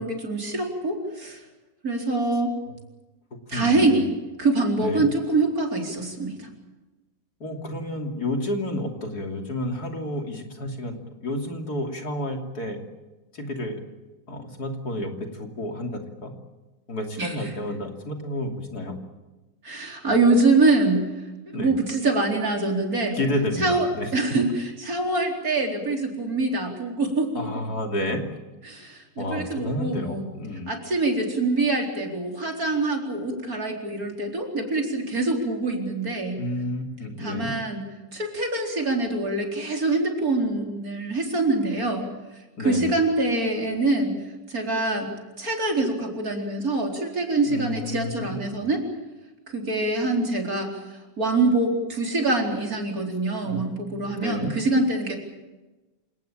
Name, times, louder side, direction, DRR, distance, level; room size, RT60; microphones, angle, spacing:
voice 1, 0.0-1.4 1.8-2.5 3.5-4.1 4.4-6.5 17.2-17.3 19.6-21.1 21.5-23.2 23.6-27.5 28.6-30.3 30.7-36.4 37.2-37.8 38.1-42.0 42.6-44.1 44.5-45.1 45.4-48.8 49.5-50.7 51.2-55.2, right 2 dB, 50° right, 2 dB, 4.7 m, -24 dB
voice 2, 3.5-4.0 4.8-5.0 7.4-12.8 13.3-13.8 14.3-16.3 16.9-19.0 21.5-21.7 23.2-24.1 27.4-28.2 28.7-30.7 36.4-37.5 42.6-42.9 47.5-48.1 48.5-48.6 53.4-54.5, left 1 dB, 55° left, 3 dB, 3.5 m, -30 dB
27.5 x 18.5 x 8.9 m, 1.1 s
omnidirectional pair, 2.0 m